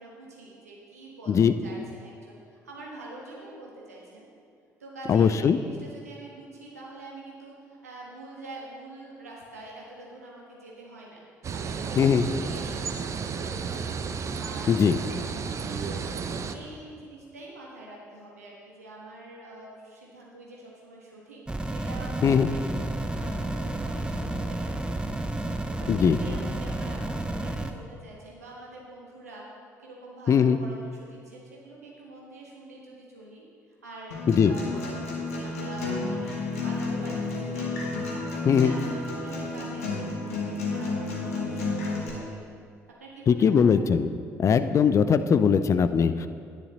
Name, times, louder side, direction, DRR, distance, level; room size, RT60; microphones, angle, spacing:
voice 1, 0.0-4.3 4.8-13.9 14.4-16.2 16.5-22.6 23.1-25.2 25.7-29.5 29.8-34.1 34.4-37.7 38.1-42.4 43.0-43.7, right 2 dB, 85° right, -3 dB, 1.6 m, -45 dB
voice 2, 5.1-5.6 12.0-12.3 14.7-15.0 22.2-22.5 25.9-26.2 30.3-30.6 34.3-34.6 38.5-38.7 43.3-44.1 44.4-46.3, left 7 dB, 40° left, 11 dB, 0.5 m, -20 dB
sound 1, 11.4-16.5, right 5 dB, 40° right, 0.7 m, -32 dB
sound 2, 21.5-27.7, right 1 dB, 10° right, 0.8 m, -31 dB
Acoustic guitar, 34.1-42.1, left 3 dB, 75° left, 1.5 m, -31 dB
10.0 x 9.9 x 4.0 m, 2.3 s
figure-of-eight pair, 50°, 8 cm